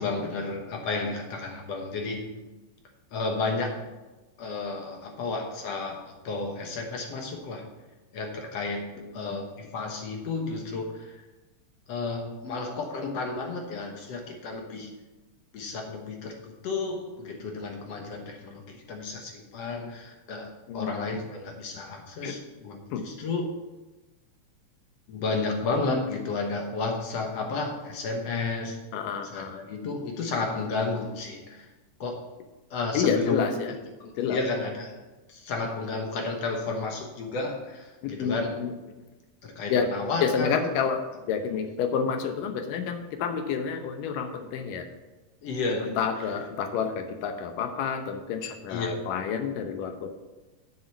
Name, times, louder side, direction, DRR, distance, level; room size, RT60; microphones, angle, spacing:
voice 1, 0.0-2.3 3.1-3.8 4.4-7.7 8.1-8.9 9.1-11.2 11.9-14.9 15.5-23.5 25.1-28.8 29.2-31.7 32.0-32.2 32.7-35.0 35.3-38.5 39.4-40.6 45.4-46.0 48.7-49.0, left 3 dB, 60° left, 2 dB, 2.0 m, -32 dB
voice 2, 9.0-9.4 20.7-21.2 22.2-22.4 22.9-23.0 28.9-29.6 32.9-33.7 34.2-34.4 38.0-38.7 39.7-39.9 40.2-41.0 41.3-44.9 46.0-50.1, left 6 dB, 85° left, 7 dB, 2.6 m, -29 dB
7.7 x 6.7 x 7.0 m, 1.1 s
omnidirectional pair, 3.8 m